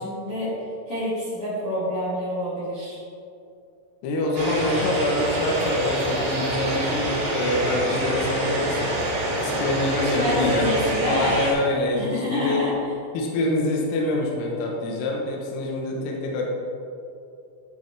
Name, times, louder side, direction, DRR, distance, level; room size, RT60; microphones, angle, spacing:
voice 1, 0.0-3.0 10.0-11.4 11.9-12.8, left 1 dB, 45° left, -12 dB, 1.9 m, -27 dB
voice 2, 4.0-8.8 9.4-10.8 11.1-12.6 13.1-16.5, left 1 dB, 75° left, -1 dB, 2.6 m, -25 dB
sound 1, 4.3-11.5, right 1 dB, 60° right, 2.1 m, -26 dB
10.0 x 5.4 x 3.2 m, 2.6 s
omnidirectional pair, 5.3 m